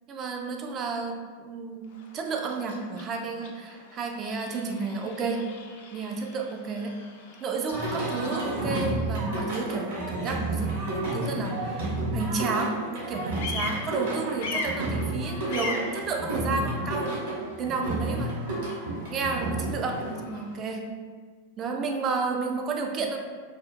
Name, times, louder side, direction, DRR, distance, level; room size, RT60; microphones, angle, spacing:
voice 1, 0.1-1.9 2.1-5.4 5.9-6.9 7.4-17.2 17.6-18.3 19.1-20.9 21.6-23.2, right 4 dB, 30° right, 2 dB, 0.3 m, -31 dB
Bird vocalization bird call bird song, 1.8-20.6, left 3 dB, 55° left, 0.3 m, -42 dB
Singing, 7.7-20.1, right 2 dB, 60° right, 0.9 m, -31 dB
2.5 x 2.3 x 2.4 m, 1.5 s
figure-of-eight pair, 90°, 0 cm